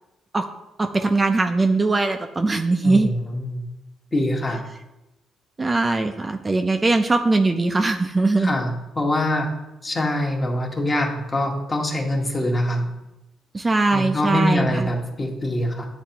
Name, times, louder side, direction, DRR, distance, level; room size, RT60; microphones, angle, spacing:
voice 1, 0.8-3.1 5.6-8.6 13.5-14.9, right 3 dB, 25° right, 5 dB, 0.4 m, -20 dB
voice 2, 2.8-3.6 4.1-4.6 8.4-9.5 9.8-12.9 13.9-15.9, left 1 dB, 30° left, 1 dB, 1.1 m, -24 dB
9.9 x 3.3 x 2.8 m, 0.95 s
cardioid pair, 90°, 0 cm